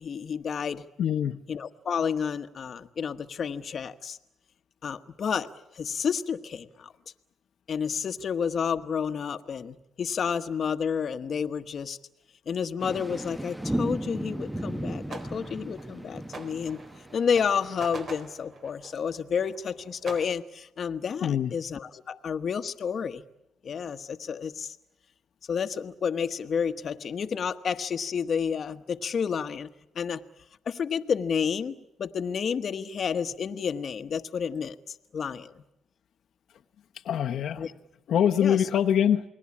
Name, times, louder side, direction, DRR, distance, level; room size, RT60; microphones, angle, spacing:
voice 1, 0.0-0.8 1.5-4.2 4.8-6.9 7.7-12.0 12.5-16.8 17.1-23.2 23.6-24.8 25.5-30.2 30.6-35.6 37.6-37.7 38.4-38.7, left 6 dB, 50° left, 8 dB, 1.2 m, -30 dB
voice 2, 1.0-1.4 21.2-21.5 37.0-37.7 38.1-39.2, left 9 dB, 70° left, 2 dB, 1.0 m, -24 dB
sound 1, 12.8-18.0, right 1 dB, 5° right, 1.0 m, -35 dB
sound 2, 14.9-20.3, right 3 dB, 50° right, 3.9 m, -45 dB
29.0 x 21.0 x 8.6 m, 0.89 s
cardioid pair, 90°, 0 cm